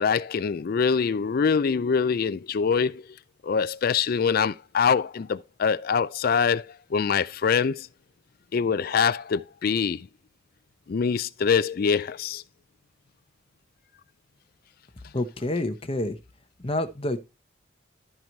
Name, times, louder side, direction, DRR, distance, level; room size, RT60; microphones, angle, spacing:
voice 1, 0.0-3.0 3.4-7.9 8.5-10.1 10.9-12.4, left 6 dB, 50° left, 0.4 m, -24 dB
voice 2, 15.1-16.2 16.6-17.2, left 1 dB, 30° left, 0.9 m, -28 dB
12.5 x 4.6 x 4.0 m
head